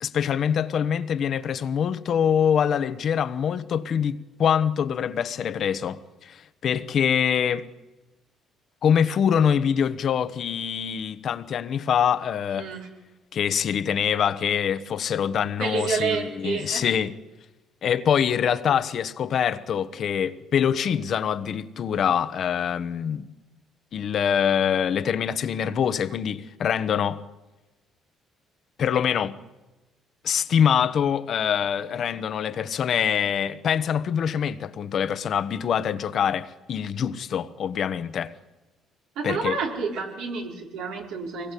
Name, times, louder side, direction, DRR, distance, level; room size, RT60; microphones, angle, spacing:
voice 1, 0.0-7.7 8.8-12.7 13.3-17.2 17.8-23.3 23.9-27.2 28.8-29.4 30.2-38.3 39.2-39.6, left 8 dB, 55° left, 1.1 m, -24 dB
voice 2, 12.6-12.9 15.6-16.9 31.9-32.1 39.2-41.5, right 5 dB, 85° right, 5.1 m, -29 dB
23.5 x 20.0 x 8.4 m
cardioid pair, 100°, 0 cm